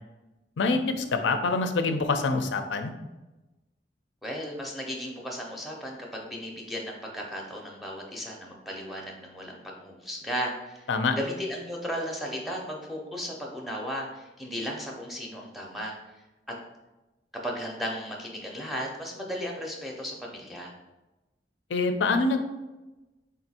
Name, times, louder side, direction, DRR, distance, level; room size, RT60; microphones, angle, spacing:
voice 1, 0.6-2.9 10.9-11.2 21.7-22.4, left 3 dB, 85° left, 7 dB, 0.4 m, -25 dB
voice 2, 4.2-10.9 11.1-15.9 17.4-20.7, equal, ahead, -2 dB, 0.5 m, -35 dB
3.8 x 2.6 x 4.1 m, 1.1 s
head